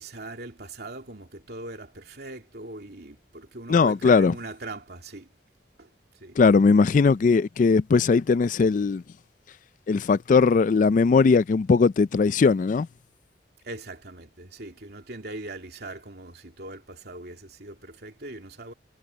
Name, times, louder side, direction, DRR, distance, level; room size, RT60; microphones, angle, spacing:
voice 1, 0.0-5.3 5.8-5.9 6.2-6.4 13.6-18.7, right 2 dB, 60° right, 2.8 m, -40 dB
voice 2, 3.7-4.3 6.4-9.0 9.9-12.9, left 4 dB, 45° left, 0.3 m, -19 dB
head